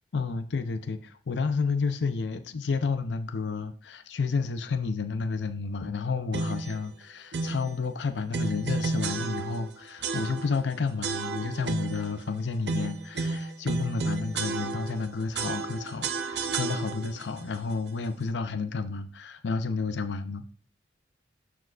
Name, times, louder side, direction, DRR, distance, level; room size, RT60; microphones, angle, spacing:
voice 1, 0.1-20.4, left 4 dB, 85° left, 0.5 m, -31 dB
sound 1, 6.3-6.8 7.3-7.7 8.3-9.7 10.0-10.6 11.0-12.1 12.6-15.0 15.3-17.2, right 4 dB, 70° right, 0.6 m, -32 dB
12.5 x 4.7 x 2.4 m
head